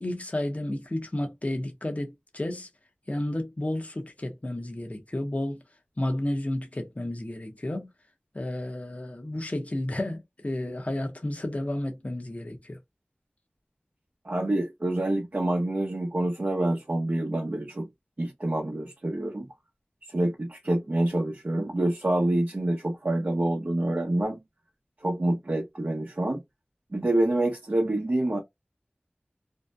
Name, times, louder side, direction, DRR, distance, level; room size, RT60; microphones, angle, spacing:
voice 1, 0.0-2.7 3.1-5.6 6.0-7.9 8.3-12.8, left 1 dB, 40° left, 0.8 m, -32 dB
voice 2, 14.2-17.9 18.2-19.5 20.1-24.4 25.0-26.4 26.9-28.4, right 1 dB, 50° right, 0.7 m, -27 dB
2.7 x 2.0 x 2.3 m
wide cardioid pair, 40°, 4 cm